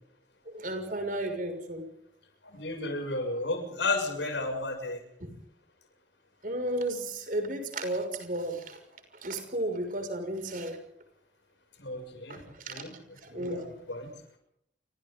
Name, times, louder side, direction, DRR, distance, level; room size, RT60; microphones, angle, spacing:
voice 1, 0.5-1.9 5.2-5.3 6.4-8.8 9.2-10.8 12.3-12.8 13.3-13.7, right 1 dB, 45° right, 6 dB, 6.1 m, -33 dB
voice 2, 2.4-5.0 11.8-12.4 12.7-12.9 13.3-14.1, left 2 dB, 75° left, 5 dB, 6.9 m, -33 dB
30.0 x 25.5 x 3.9 m, 0.71 s
head